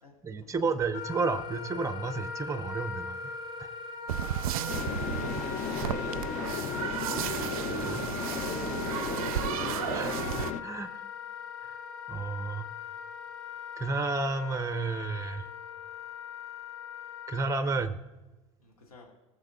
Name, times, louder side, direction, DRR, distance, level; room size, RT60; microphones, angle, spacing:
voice 1, 0.2-3.2 3.6-3.7 4.5-4.6 7.8-8.0 9.9-11.0 11.6-11.8 12.1-12.7 13.8-15.5 17.3-18.0, right 4 dB, 15° right, 10 dB, 0.8 m, -32 dB
Wind instrument woodwind instrument, 0.9-17.5, left 5 dB, 65° left, 1.6 m, -40 dB
sound 1, 4.1-10.5, right 12 dB, 75° right, 0.4 m, -34 dB
sound 2, 4.7-10.6, left 8 dB, 40° left, 0.7 m, -35 dB
voice 2, 5.3-5.6 5.8-6.3 18.6-19.1, left 2 dB, 85° left, 0 dB, 1.9 m, -51 dB
19.5 x 7.1 x 2.3 m, 1.2 s
hypercardioid pair, 75°, 19 cm